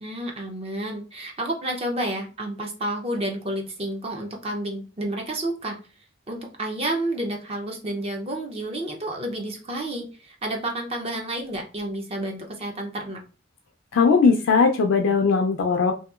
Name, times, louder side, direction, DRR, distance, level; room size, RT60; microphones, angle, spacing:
voice 1, 0.0-5.8 6.3-13.2, right 1 dB, 30° right, 2 dB, 0.5 m, -30 dB
voice 2, 13.9-15.9, left 5 dB, 70° left, 3 dB, 0.3 m, -19 dB
2.8 x 2.6 x 2.3 m, 0.34 s
head